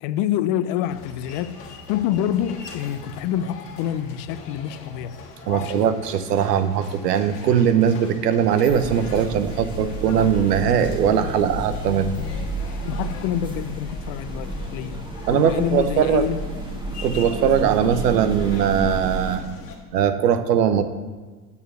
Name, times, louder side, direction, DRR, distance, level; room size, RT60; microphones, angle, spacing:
voice 1, 0.0-5.2 5.5-5.9 12.8-16.4, left 11 dB, 55° left, 0.6 m, -27 dB
sound 1, 0.9-19.8, left 4 dB, 85° left, 1.5 m, -41 dB
voice 2, 5.5-12.2 15.3-16.2 17.0-19.4 19.9-20.8, right 8 dB, 85° right, 0.8 m, -20 dB
sound 2, 8.7-19.4, right 2 dB, 10° right, 1.0 m, -31 dB
8.4 x 4.7 x 6.7 m
hypercardioid pair, 95°, 47 cm